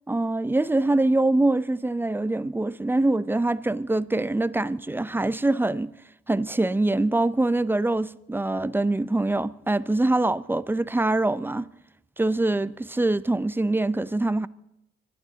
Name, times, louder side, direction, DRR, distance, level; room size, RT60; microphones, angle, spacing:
voice 1, 0.1-5.9 6.3-11.7 12.2-14.5, right 2 dB, 10° right, 0.5 m, -24 dB
25.0 x 12.0 x 3.9 m
cardioid pair, 90°, 20 cm